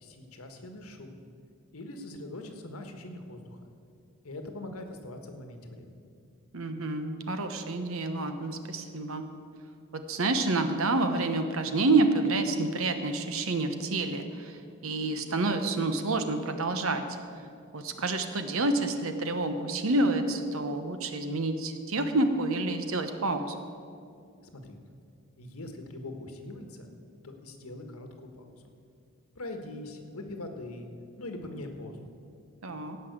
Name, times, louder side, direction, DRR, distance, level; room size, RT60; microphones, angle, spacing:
voice 1, 0.0-1.2 1.7-3.7 4.2-6.0 24.4-24.8 25.4-26.9 27.2-28.7 29.3-30.9 31.2-32.0, left 2 dB, 80° left, 5 dB, 1.5 m, -42 dB
voice 2, 6.5-9.3 9.9-17.0 17.7-23.5 32.6-33.0, right 2 dB, 65° right, 8 dB, 1.1 m, -28 dB
16.5 x 5.8 x 8.1 m, 2.4 s
head